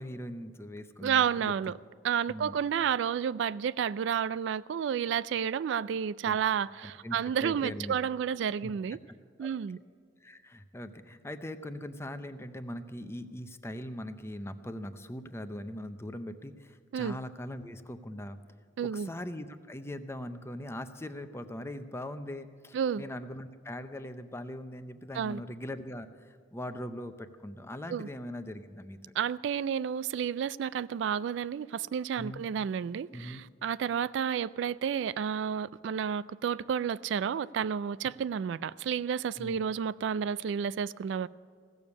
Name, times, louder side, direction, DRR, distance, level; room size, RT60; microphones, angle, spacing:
voice 1, 0.0-1.5 2.3-2.6 6.2-6.4 6.8-7.9 8.6-8.7 9.4-9.6 10.2-18.4 18.8-29.0 32.2-32.4 33.1-33.4 39.4-39.6, left 1 dB, 15° left, 0.6 m, -41 dB
voice 2, 1.0-1.7 2.0-9.0 9.4-9.8 16.9-17.2 18.8-19.1 22.7-23.0 25.1-25.4 27.9-28.1 29.2-41.3, right 8 dB, 75° right, 0.3 m, -31 dB
16.0 x 7.1 x 9.5 m
head